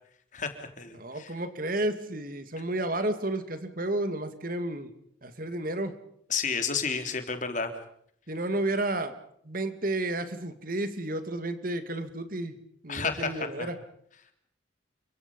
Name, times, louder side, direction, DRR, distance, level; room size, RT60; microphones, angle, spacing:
voice 1, 0.3-1.3 6.3-7.7 12.9-13.7, left 5 dB, 40° left, 7 dB, 3.4 m, -31 dB
voice 2, 1.0-4.9 5.2-6.0 8.3-9.1 9.5-12.5 12.8-13.8, right 1 dB, 45° right, 10 dB, 2.3 m, -31 dB
29.0 x 25.0 x 5.5 m, 0.67 s
head